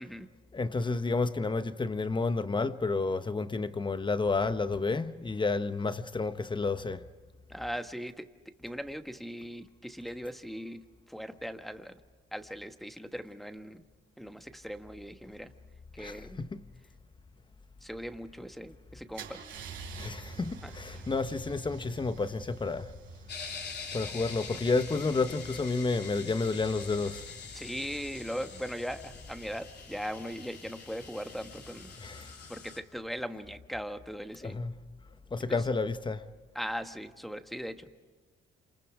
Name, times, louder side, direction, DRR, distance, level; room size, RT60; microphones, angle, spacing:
voice 1, 0.5-7.1 16.0-16.6 19.9-22.9 23.9-27.3 32.0-32.3 34.4-34.7 35.3-36.3, left 3 dB, 25° left, 1.0 m, -31 dB
voice 2, 7.5-12.0 12.3-13.8 14.2-15.5 15.9-16.4 17.8-19.4 20.6-21.0 27.5-31.9 32.5-34.6 35.5-35.6 36.5-38.0, equal, ahead, 1.3 m, -39 dB
Car / Engine starting / Idling, 19.1-25.0, right 4 dB, 80° right, 4.0 m, -46 dB
sound 1, 23.3-32.8, left 5 dB, 55° left, 3.4 m, -45 dB
28.0 x 27.0 x 4.8 m
cardioid pair, 90°, 20 cm